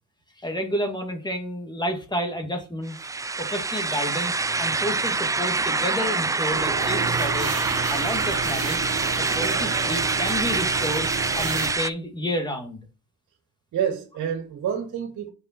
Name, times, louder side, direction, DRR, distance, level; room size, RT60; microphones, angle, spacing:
voice 1, 0.4-3.0 3.4-7.5 7.9-8.8 9.3-11.1 11.3-12.9, equal, 15° left, 2.1 m, -30 dB
sound 1, 2.9-11.9, right 3 dB, 10° right, 0.3 m, -26 dB
sound 2, 6.5-11.7, right 6 dB, 50° right, 1.6 m, -31 dB
voice 2, 13.7-15.3, right 8 dB, 75° right, 2.2 m, -28 dB
6.6 x 5.4 x 4.4 m
cardioid pair, 90°, 30 cm